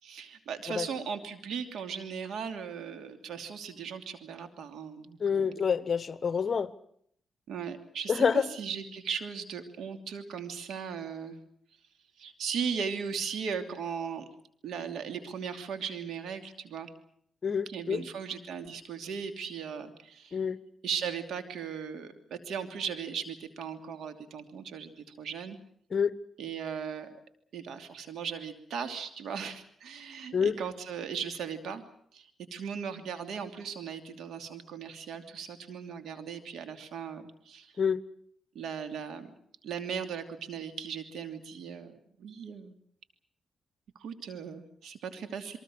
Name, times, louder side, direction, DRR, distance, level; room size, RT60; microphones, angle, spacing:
voice 1, 0.0-5.6 7.5-11.4 12.2-14.2 14.6-16.9 17.7-20.4 20.8-25.6 26.4-27.2 27.5-31.8 32.1-37.7 38.5-39.3 39.6-42.8 44.0-45.6, right 6 dB, 80° right, 2.8 m, -38 dB
voice 2, 5.2-6.7 8.1-8.5 17.4-18.1 20.3-20.6 25.9-26.1 30.3-30.5 37.8-38.0, left 6 dB, 45° left, 1.2 m, -27 dB
27.5 x 23.0 x 6.3 m
cardioid pair, 80°, 0 cm